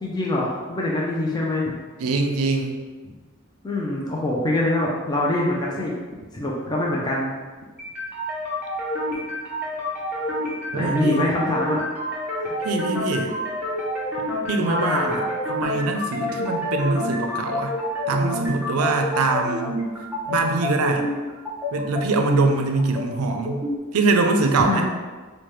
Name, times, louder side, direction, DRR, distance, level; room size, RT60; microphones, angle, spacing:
voice 1, 0.0-1.7 3.0-3.1 3.6-5.9 6.3-7.3 10.7-11.8 12.4-12.5 14.6-15.2 24.6-24.8, left 1 dB, 20° left, -4 dB, 0.4 m, -24 dB
voice 2, 2.0-2.8 10.7-11.3 12.6-13.4 14.5-17.7 18.1-19.7 20.2-21.1 21.7-23.6 23.9-24.8, right 3 dB, 90° right, 4 dB, 0.4 m, -23 dB
sound 1, 7.8-23.8, left 1 dB, 10° right, 0.7 m, -28 dB
4.5 x 2.2 x 3.1 m, 1.3 s
head